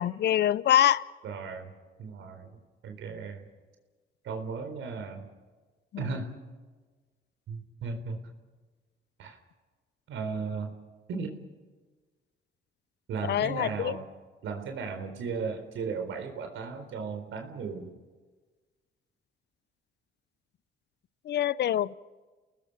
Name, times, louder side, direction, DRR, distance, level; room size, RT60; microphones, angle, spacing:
voice 1, 0.0-1.1 5.9-6.1 13.3-13.9 21.3-21.9, left 11 dB, 60° left, 20 dB, 0.6 m, -25 dB
voice 2, 1.2-1.7 2.0-3.5 4.2-5.3 6.0-6.4 7.5-8.2 9.2-9.4 10.1-10.8 11.1-11.4 13.1-14.0 14.4-17.9, right 5 dB, 80° right, 5 dB, 4.0 m, -36 dB
30.0 x 19.5 x 5.7 m, 1.3 s
cardioid pair, 90°, 20 cm